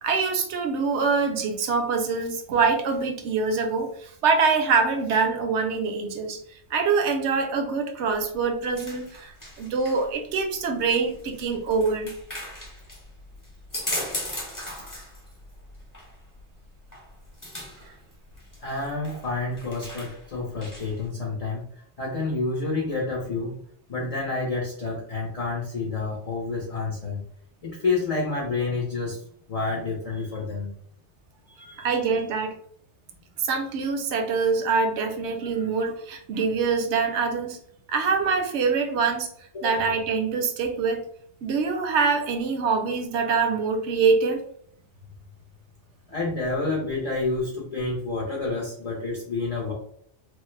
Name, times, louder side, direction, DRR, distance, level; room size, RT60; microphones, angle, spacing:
voice 1, 0.0-6.4 6.7-12.1 17.9-18.0 31.6-32.5 33.4-37.6 37.9-39.3 39.6-41.0 41.4-44.4, right 4 dB, 75° right, 6 dB, 0.9 m, -24 dB
sound 1, 8.1-21.1, left 1 dB, 20° left, 0.9 m, -39 dB
voice 2, 18.6-23.6 23.9-27.2 27.6-30.7 31.5-32.2 39.5-39.7 46.1-49.7, left 3 dB, 40° left, -4 dB, 0.6 m, -29 dB
3.1 x 2.0 x 3.1 m, 0.64 s
omnidirectional pair, 1.2 m